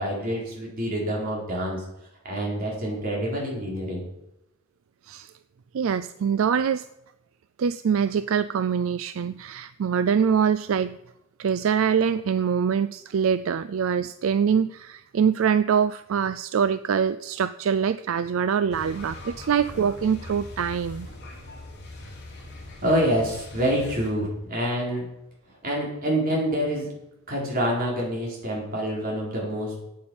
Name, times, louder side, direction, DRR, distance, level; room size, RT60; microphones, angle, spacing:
voice 1, 0.0-1.8 2.2-4.0 22.8-25.1 25.5-26.9 27.3-29.8, equal, 45° right, -3 dB, 4.3 m, -27 dB
voice 2, 5.7-6.9 7.6-11.0 11.4-21.1, right 7 dB, 70° right, 14 dB, 0.4 m, -24 dB
sound 1, 18.7-24.1, left 1 dB, 50° left, 3.3 m, -41 dB
9.4 x 8.7 x 7.0 m, 0.90 s
head